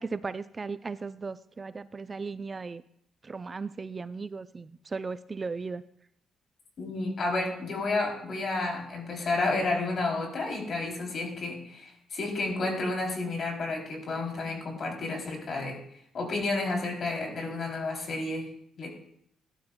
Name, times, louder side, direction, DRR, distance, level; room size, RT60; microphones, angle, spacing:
voice 1, 0.0-2.8 3.2-5.8, right 4 dB, 30° right, 14 dB, 0.4 m, -36 dB
voice 2, 6.8-15.8 16.1-18.5 18.8-18.9, left 2 dB, 55° left, 1 dB, 3.0 m, -31 dB
16.5 x 11.5 x 2.2 m, 0.70 s
cardioid pair, 90°, 0 cm